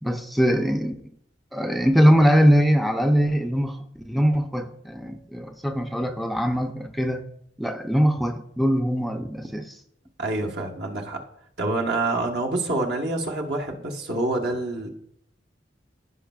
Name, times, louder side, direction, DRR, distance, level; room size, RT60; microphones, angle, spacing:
voice 1, 0.0-0.9 1.5-7.3 7.6-9.8, equal, ahead, 4 dB, 0.4 m, -22 dB
voice 2, 10.2-11.2 11.6-14.9, right 2 dB, 65° right, 0 dB, 1.2 m, -27 dB
15.0 x 5.2 x 2.3 m, 0.73 s
head